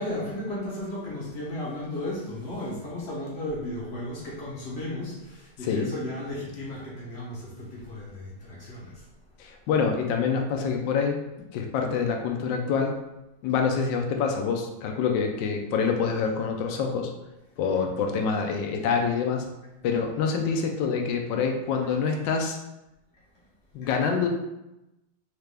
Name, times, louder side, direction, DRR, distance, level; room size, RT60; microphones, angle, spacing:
voice 1, 0.0-9.0 23.8-23.9, left 1 dB, 50° left, -6 dB, 0.8 m, -34 dB
voice 2, 9.4-11.2 11.5-13.0 13.4-17.1 17.6-19.5 19.8-22.6 23.7-24.3, left 5 dB, 75° left, 3 dB, 1.2 m, -26 dB
4.5 x 2.4 x 3.3 m, 0.94 s
omnidirectional pair, 2.3 m